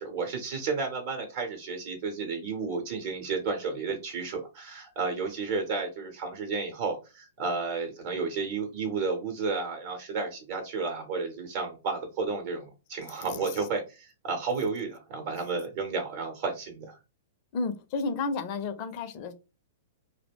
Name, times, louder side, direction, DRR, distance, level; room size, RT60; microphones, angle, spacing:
voice 1, 0.0-17.0, right 4 dB, 55° right, 0.8 m, -32 dB
voice 2, 17.5-19.3, left 4 dB, 45° left, 0.5 m, -32 dB
2.3 x 2.0 x 3.5 m
hypercardioid pair, 120°, 0 cm